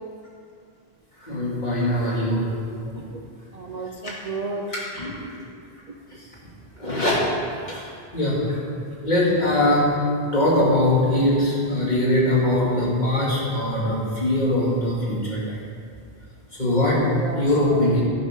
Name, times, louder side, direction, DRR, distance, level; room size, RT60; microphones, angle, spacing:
voice 1, 1.2-2.4 4.0-4.1 4.7-5.1 6.8-7.2 7.7-7.9 8.1-8.6 9.0-9.9 10.3-15.6 16.6-17.0 17.3-18.0, left 1 dB, 45° left, -6 dB, 2.7 m, -21 dB
voice 2, 3.5-4.6 7.6-7.8 9.0-9.1 17.2-17.8, right 4 dB, 45° right, 1 dB, 0.7 m, -33 dB
11.5 x 10.5 x 3.8 m, 2.2 s
omnidirectional pair, 1.1 m